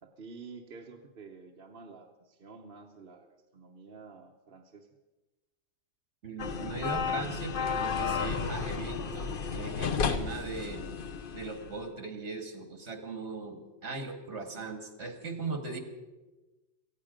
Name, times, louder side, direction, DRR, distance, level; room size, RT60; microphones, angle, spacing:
voice 1, 0.0-4.9, right 4 dB, 55° right, 2 dB, 1.2 m, -50 dB
voice 2, 6.2-10.9 11.3-15.8, right 3 dB, 70° right, 6 dB, 2.1 m, -39 dB
sound 1, 6.4-11.8, left 6 dB, 50° left, 0.9 m, -33 dB
18.0 x 15.0 x 5.1 m, 1.1 s
omnidirectional pair, 1.2 m